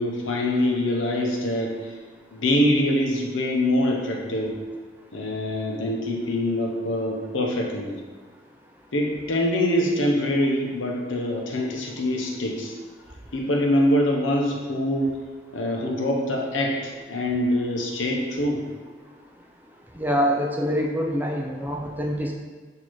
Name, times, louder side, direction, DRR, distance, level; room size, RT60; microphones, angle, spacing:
voice 1, 0.0-2.0 2.3-4.6 5.1-8.0 8.9-12.7 13.3-15.2 15.5-18.6, left 1 dB, 90° left, 0 dB, 0.7 m, -24 dB
voice 2, 20.0-22.3, equal, 10° right, 0 dB, 0.4 m, -25 dB
6.3 x 2.7 x 3.0 m, 1.5 s
head